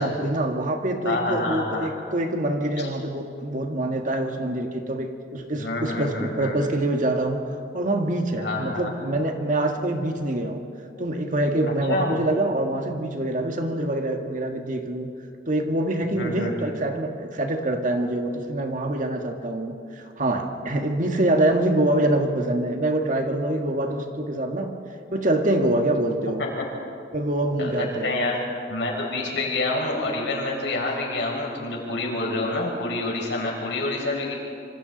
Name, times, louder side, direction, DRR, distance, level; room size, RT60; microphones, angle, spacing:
voice 1, 0.0-7.5 7.7-10.6 11.0-15.1 15.5-24.7 25.1-26.4 27.1-28.2, right 1 dB, 45° right, 4 dB, 1.7 m, -25 dB
voice 2, 1.0-1.9 2.8-2.9 5.6-6.6 8.4-8.9 11.9-12.2 16.2-16.7 26.4-26.5 27.6-28.4 28.7-34.3, left 2 dB, 75° left, -2 dB, 5.4 m, -27 dB
26.0 x 25.5 x 4.1 m, 2.5 s
head